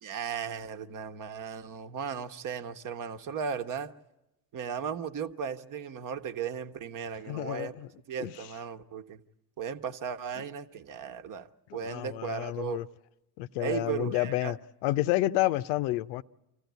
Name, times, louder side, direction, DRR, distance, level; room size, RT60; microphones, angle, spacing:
voice 1, 0.0-3.9 4.5-7.7 8.1-9.2 9.6-12.8 13.6-14.5, right 7 dB, 45° right, 1.2 m, -36 dB
voice 2, 7.3-7.9 8.2-8.3 10.4-10.5 11.7-12.9 13.4-16.2, left 16 dB, 70° left, 0.7 m, -30 dB
26.0 x 14.5 x 9.4 m
hypercardioid pair, 85°, 46 cm